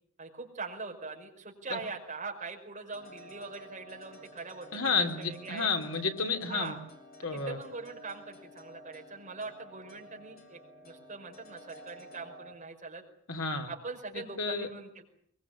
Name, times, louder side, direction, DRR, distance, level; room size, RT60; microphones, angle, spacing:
voice 1, 0.2-5.7 6.5-6.8 7.3-13.0 13.7-15.0, right 4 dB, 35° right, 2 dB, 5.3 m, -42 dB
sound 1, 2.9-12.5, equal, 40° left, 4.2 m, -52 dB
voice 2, 4.7-6.7 7.2-7.6 13.3-13.7 14.1-14.7, left 4 dB, 65° left, 5 dB, 3.3 m, -31 dB
23.5 x 22.5 x 8.6 m, 0.64 s
head